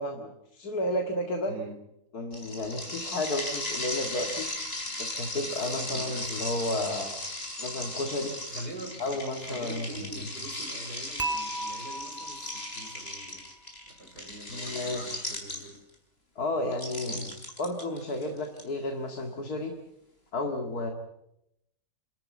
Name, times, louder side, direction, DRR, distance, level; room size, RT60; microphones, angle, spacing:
voice 1, 0.0-1.5 2.1-4.5 5.0-7.1 7.6-8.3 9.0-10.2 14.5-15.3 16.4-17.3 17.6-19.7 20.3-20.9, left 1 dB, 70° left, 4 dB, 2.5 m, -32 dB
sound 1, 2.3-15.9 16.7-18.6, left 1 dB, 35° left, 5.0 m, -37 dB
voice 2, 5.5-6.4 8.5-13.5 13.9-15.8 17.0-17.4, right 1 dB, 80° right, 4 dB, 4.9 m, -44 dB
Dishes pots and pans / Chink clink, 11.2-13.3, right 1 dB, 10° right, 1.9 m, -36 dB
28.5 x 13.5 x 9.5 m, 0.83 s
omnidirectional pair, 1.7 m